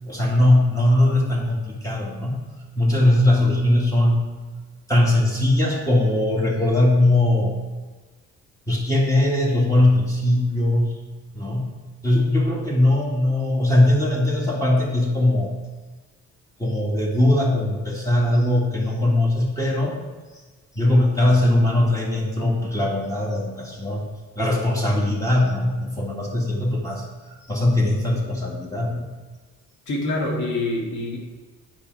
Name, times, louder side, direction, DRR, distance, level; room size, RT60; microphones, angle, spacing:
voice 1, 0.0-2.4 2.8-4.2 4.9-7.6 8.7-10.9 11.3-11.7 12.0-15.5 16.6-20.0 20.7-24.0 24.4-29.1, left 1 dB, 10° left, -4 dB, 2.1 m, -20 dB
voice 2, 29.9-31.2, left 2 dB, 70° left, -1 dB, 2.1 m, -25 dB
8.7 x 5.4 x 4.7 m, 1.4 s
cardioid pair, 90°, 30 cm